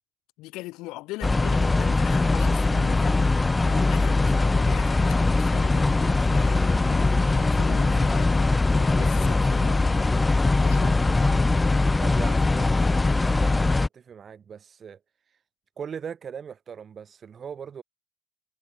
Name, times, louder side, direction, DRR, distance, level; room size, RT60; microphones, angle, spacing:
voice 1, 0.4-10.2 10.6-11.0, left 20 dB, 75° left, 1.2 m, -41 dB
sound 1, 1.2-13.9, left 3 dB, 20° left, 0.6 m, -21 dB
sound 2, 7.9-8.6 10.3-11.5, left 9 dB, 50° left, 1.8 m, -40 dB
voice 2, 11.0-11.6 12.0-15.0 15.8-17.8, right 7 dB, 45° right, 2.0 m, -40 dB
hypercardioid pair, 65°, 0 cm